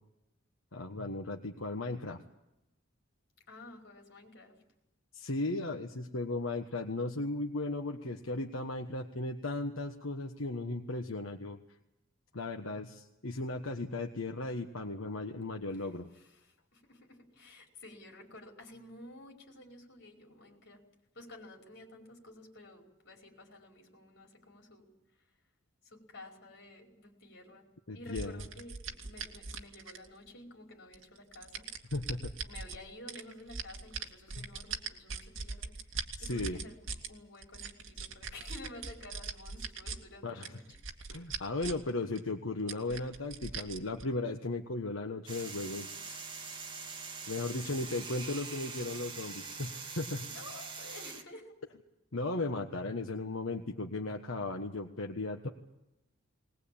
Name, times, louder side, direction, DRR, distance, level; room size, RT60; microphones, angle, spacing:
voice 1, 0.7-2.2 5.1-11.6 12.3-16.1 27.9-28.4 31.9-32.3 34.4-34.5 36.2-36.6 40.2-40.5 41.1-46.2 47.3-50.3 52.1-55.5, left 2 dB, 85° left, 3 dB, 1.4 m, -36 dB
voice 2, 3.5-4.6 15.7-15.9 16.1-20.8 21.1-24.9 25.8-27.7 27.9-31.7 32.4-40.7 50.2-51.6, left 1 dB, 60° left, 1 dB, 5.1 m, -52 dB
sound 1, 28.1-30.3 30.9-32.8 33.1-37.1 37.4-40.0 40.4-41.9 42.2-42.3 42.7-44.0, right 5 dB, 70° right, 2.1 m, -41 dB
sound 2, 45.3-51.2, right 5 dB, 25° right, 2.2 m, -43 dB
20.5 x 20.0 x 8.7 m, 0.90 s
head